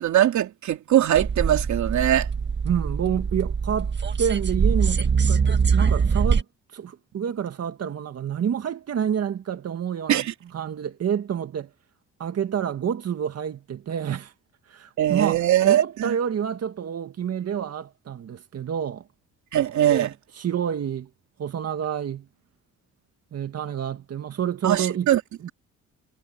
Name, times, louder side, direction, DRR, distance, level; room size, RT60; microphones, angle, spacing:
voice 1, 0.0-2.3 10.1-10.3 15.0-16.1 19.5-20.1 24.6-25.2, right 12 dB, 70° right, 3.0 m, -21 dB
sound 1, 1.1-6.4, right 6 dB, 35° right, 1.7 m, -23 dB
voice 2, 2.6-6.5 6.7-10.3 10.5-11.7 12.2-14.3 14.7-19.1 19.7-21.1 21.4-22.3 23.3-25.1 25.4-25.5, right 8 dB, 55° right, 1.8 m, -28 dB
cardioid pair, 90°, 30 cm